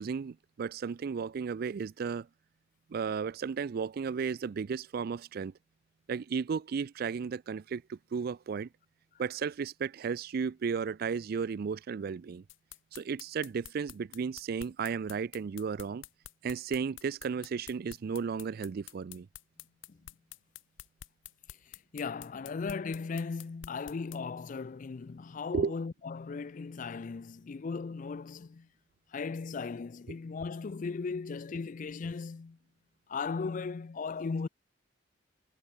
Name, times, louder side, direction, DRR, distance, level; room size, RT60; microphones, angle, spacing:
voice 1, 0.0-2.3 2.9-5.5 6.1-8.7 9.2-12.4 12.9-16.0 16.4-19.3 25.5-25.7, right 6 dB, 55° right, 0.4 m, -34 dB
sound 1, 12.5-24.2, left 11 dB, 85° left, 0.8 m, -48 dB
voice 2, 21.9-28.7 29.1-32.6 33.1-34.5, left 4 dB, 40° left, 0.4 m, -37 dB
head